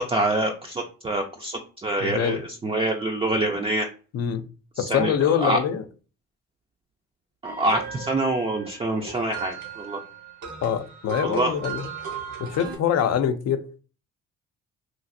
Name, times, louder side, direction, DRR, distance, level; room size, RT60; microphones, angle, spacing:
voice 1, 0.0-3.9 4.8-5.6 7.4-10.0 11.2-11.5, right 1 dB, 20° right, 1 dB, 0.4 m, -26 dB
voice 2, 2.0-2.4 4.1-4.4 4.8-5.8 10.6-11.8 12.4-13.6, left 8 dB, 60° left, 10 dB, 0.5 m, -24 dB
sound 1, 7.4-12.8, right 7 dB, 75° right, 1.1 m, -37 dB
3.1 x 2.5 x 2.5 m, 0.36 s
cardioid pair, 90°, 30 cm